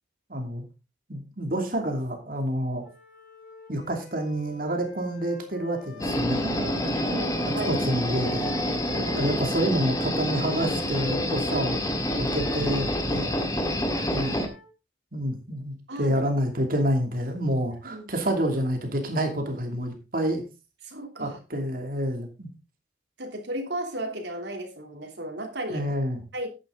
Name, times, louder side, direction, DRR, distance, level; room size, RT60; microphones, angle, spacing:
voice 1, 0.3-0.6 1.1-2.8 3.7-6.9 7.7-8.5 9.0-11.8 12.1-13.3 14.1-14.5 15.1-20.4 21.2-22.5 25.7-26.2, right 1 dB, 55° right, 4 dB, 2.7 m, -28 dB
Wind instrument woodwind instrument, 2.8-8.7 9.1-14.7, left 5 dB, 60° left, 5.2 m, -48 dB
sound 1, 6.0-14.5, equal, 20° left, 1.7 m, -27 dB
voice 2, 7.1-7.8 8.9-9.3 13.9-14.1 15.9-16.3 17.8-18.1 20.8-21.4 23.2-25.8 26.3-26.5, right 1 dB, 80° right, 3 dB, 3.1 m, -34 dB
11.0 x 9.1 x 3.9 m, 0.29 s
head